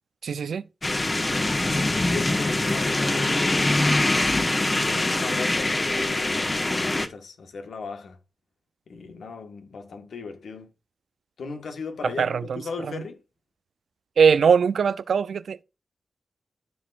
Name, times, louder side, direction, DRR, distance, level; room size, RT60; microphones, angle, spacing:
voice 1, 0.2-0.6 12.2-13.0 14.2-15.6, right 6 dB, 80° right, 0.5 m, -21 dB
sound 1, 0.8-7.1, left 2 dB, 35° left, 1.5 m, -23 dB
voice 2, 1.4-3.6 4.8-8.2 8.9-10.7 11.4-13.2, left 4 dB, 80° left, 1.5 m, -37 dB
13.0 x 4.9 x 2.5 m
cardioid pair, 45°, 0 cm